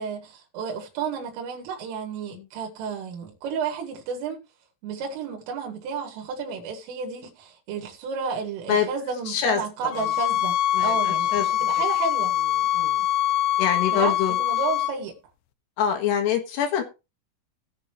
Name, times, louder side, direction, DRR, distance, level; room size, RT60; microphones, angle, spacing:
voice 1, 0.0-4.4 4.8-12.3 13.9-14.1 14.4-15.2, right 5 dB, 75° right, 4.4 m, -32 dB
voice 2, 9.3-10.1 10.7-11.5 12.6-13.0 13.6-14.4 15.8-16.8, left 8 dB, 65° left, 3.3 m, -26 dB
sound 1, 9.9-14.9, left 12 dB, 90° left, 2.3 m, -24 dB
18.0 x 6.6 x 3.1 m
omnidirectional pair, 5.9 m